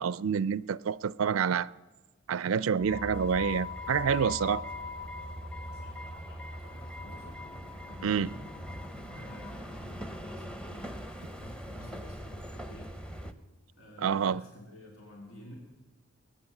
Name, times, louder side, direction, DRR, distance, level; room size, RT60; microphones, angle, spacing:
voice 1, 0.0-1.7 2.3-4.6 8.0-8.3 14.0-14.4, right 7 dB, 80° right, 0.4 m, -28 dB
sound 1, 2.8-13.3, left 2 dB, 5° left, 0.8 m, -41 dB
sound 2, 5.3-11.2, equal, 65° left, 3.3 m, -53 dB
voice 2, 5.5-7.4 7.8-8.4 9.1-11.1 11.4-13.0 13.8-15.5, left 1 dB, 85° left, 3.2 m, -51 dB
21.5 x 9.3 x 7.2 m
head